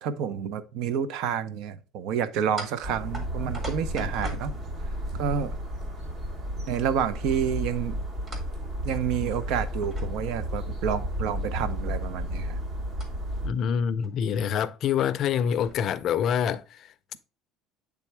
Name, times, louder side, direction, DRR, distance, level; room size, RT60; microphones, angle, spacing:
voice 1, 0.0-4.5 5.1-5.6 6.7-8.0 8.8-12.6, right 8 dB, 70° right, 0.6 m, -29 dB
sound 1, 2.5-5.4 8.3-8.6 8.9-9.0 9.6-10.4 13.0-13.1 14.0-14.1 14.5-14.6 15.3-15.8, right 1 dB, 30° right, 1.6 m, -41 dB
sound 2, 2.8-13.5, equal, 45° right, 1.2 m, -33 dB
voice 2, 13.4-16.9, left 8 dB, 50° left, 0.4 m, -26 dB
8.3 x 3.5 x 3.3 m
cardioid pair, 120°, 0 cm